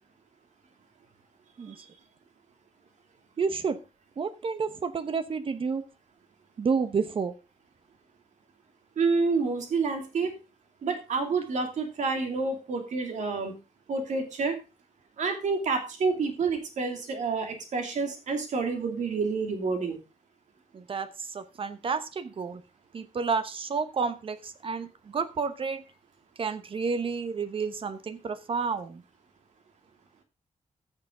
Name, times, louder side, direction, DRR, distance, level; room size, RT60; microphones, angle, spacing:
voice 1, 3.4-3.8 4.2-5.8 6.6-7.3 20.7-22.6 22.9-25.8 26.4-29.0, right 5 dB, 45° right, 12 dB, 1.0 m, -30 dB
voice 2, 9.0-10.3 10.8-13.6 13.9-14.6 15.2-20.0, right 4 dB, 75° right, 4 dB, 2.7 m, -28 dB
14.5 x 6.7 x 3.8 m, 0.30 s
wide cardioid pair, 170°, 13 cm